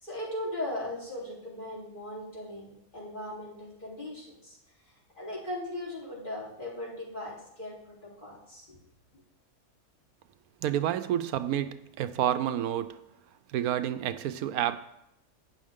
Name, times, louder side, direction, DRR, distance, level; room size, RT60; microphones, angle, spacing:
voice 1, 0.0-4.6 5.2-8.8, left 1 dB, 35° left, 3.5 m, -38 dB
voice 2, 10.6-13.0 13.5-14.8, right 11 dB, 80° right, 1.1 m, -29 dB
11.5 x 9.3 x 3.6 m
omnidirectional pair, 1.6 m